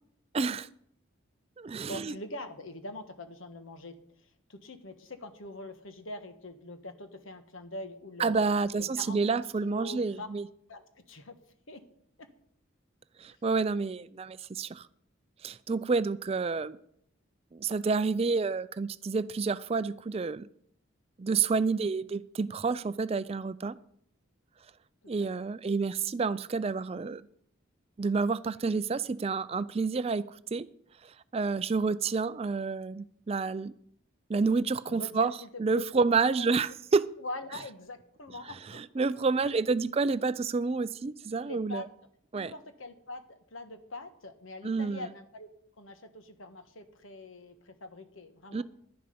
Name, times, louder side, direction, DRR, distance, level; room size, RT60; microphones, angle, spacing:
voice 1, 0.3-0.7 1.6-2.1 8.2-10.5 13.2-14.8 15.4-16.8 17.5-20.5 21.2-23.8 25.1-27.2 28.0-30.2 30.5-30.7 31.3-33.7 34.3-35.3 35.6-37.1 38.7-41.8 42.3-42.5 44.6-45.1 48.5-48.6, right 4 dB, 30° right, 15 dB, 0.4 m, -29 dB
voice 2, 1.9-3.9 4.5-8.3 8.7-10.3 10.7-11.3 11.7-11.8 12.2-12.3 13.3-13.4 25.2-25.3 34.9-36.0 36.4-36.5 37.2-38.8 41.4-41.9 42.3-45.5 45.8-48.6, left 2 dB, 75° left, 8 dB, 1.4 m, -43 dB
11.5 x 10.5 x 5.2 m, 0.66 s
head